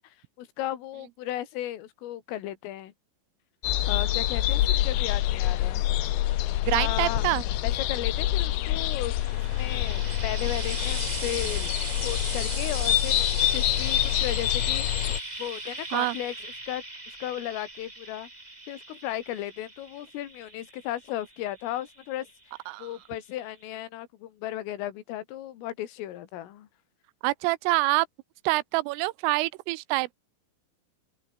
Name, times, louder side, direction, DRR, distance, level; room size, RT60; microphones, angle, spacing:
voice 1, 0.0-2.9 3.9-5.8 6.7-7.2 7.6-9.1 9.5-11.7 12.0-18.3 18.7-22.3 22.8-26.7, left 13 dB, 85° left, 4.7 m, -35 dB
sound 1, 3.6-15.2, left 14 dB, 70° left, 3.4 m, -26 dB
voice 2, 6.7-7.4 15.9-16.2 22.7-22.9 27.2-28.1 28.5-30.1, right 21 dB, 90° right, 3.4 m, -26 dB
Frying (food), 9.0-22.4 23.4-23.5, right 2 dB, 10° right, 3.0 m, -38 dB
open air
omnidirectional pair, 5.7 m